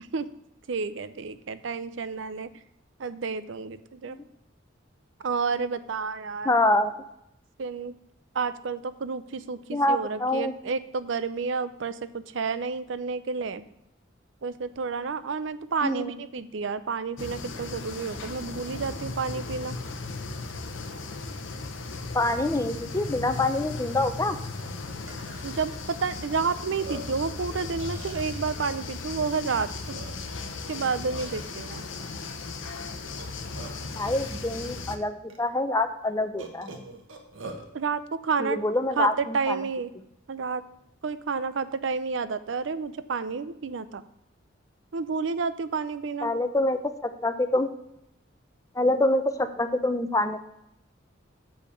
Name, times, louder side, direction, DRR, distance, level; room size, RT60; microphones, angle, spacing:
voice 1, 0.7-2.5 3.0-4.2 5.2-6.5 7.6-7.9 8.3-13.6 14.4-19.8 25.4-29.7 30.7-31.8 37.7-38.6 39.0-39.9 40.3-40.6 41.0-44.0 44.9-46.3, right 5 dB, 70° right, 14 dB, 0.5 m, -30 dB
voice 2, 6.4-6.9 9.7-10.5 15.8-16.1 22.1-24.4 34.0-36.8 38.4-39.6 46.2-47.7 48.8-50.4, left 2 dB, 15° left, 9 dB, 0.5 m, -26 dB
sound 1, 17.2-35.0, left 3 dB, 75° left, 0.9 m, -36 dB
Burping eructation, 23.3-23.4 23.8-24.0 24.6-24.7 25.1-25.8 26.4-26.5 26.8-27.2 27.8-28.8 29.5-29.6 29.9-30.4 31.2-31.5 33.0-33.9 34.8-34.9 35.3-35.4 36.4-37.7, right 2 dB, 90° right, 1.3 m, -43 dB
7.0 x 5.1 x 6.9 m, 0.81 s
head